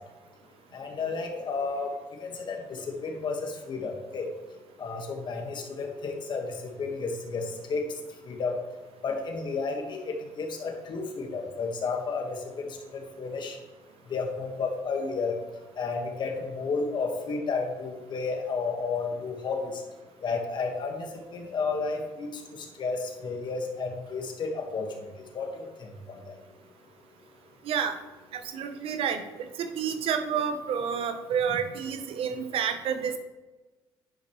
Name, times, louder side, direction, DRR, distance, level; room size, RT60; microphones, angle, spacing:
voice 1, 0.7-1.9 2.2-4.3 4.8-6.5 6.8-7.8 8.2-8.6 9.0-12.7 12.9-13.6 14.1-15.3 15.8-19.7 20.2-22.3 22.6-24.9 25.3-25.7 26.1-26.2, left 4 dB, 45° left, 2 dB, 1.5 m, -32 dB
voice 2, 27.6-28.0 28.3-33.2, right 7 dB, 65° right, 8 dB, 0.9 m, -29 dB
10.5 x 5.3 x 3.1 m, 1.2 s
cardioid pair, 90°, 10 cm